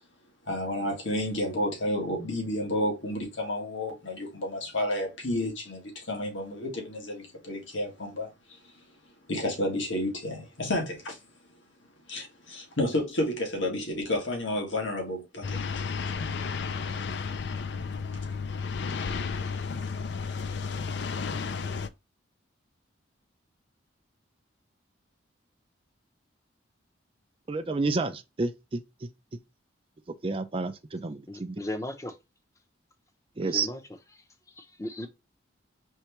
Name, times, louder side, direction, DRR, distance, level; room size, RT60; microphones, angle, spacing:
voice 1, 0.5-8.7 9.3-11.2 12.1-16.0, left 1 dB, 80° left, 1.7 m, -31 dB
sound 1, 15.4-21.9, left 5 dB, 60° left, 0.4 m, -32 dB
voice 2, 27.5-29.1 30.2-31.6 33.4-33.7, right 3 dB, 30° right, 0.4 m, -30 dB
voice 3, 31.3-32.1 33.4-33.8 34.6-35.1, left 1 dB, 15° left, 0.6 m, -36 dB
4.6 x 3.3 x 3.0 m
head